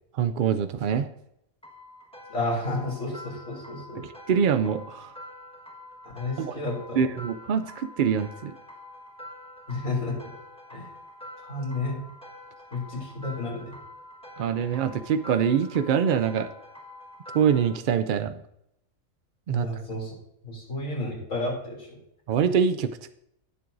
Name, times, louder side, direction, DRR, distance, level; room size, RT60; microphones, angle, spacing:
voice 1, 0.1-1.1 4.0-5.1 6.4-6.5 7.0-8.5 14.4-16.5 17.3-18.3 19.5-19.7 22.3-23.1, right 7 dB, 70° right, 10 dB, 0.4 m, -24 dB
sound 1, 1.6-17.8, left 1 dB, 5° left, 1.3 m, -46 dB
voice 2, 2.3-4.0 6.1-7.0 9.7-10.2 10.7-10.9 11.4-12.0 12.7-13.8 19.5-20.1 20.4-22.0, left 2 dB, 65° left, -2 dB, 3.6 m, -31 dB
16.5 x 7.7 x 2.6 m, 0.78 s
omnidirectional pair, 1.5 m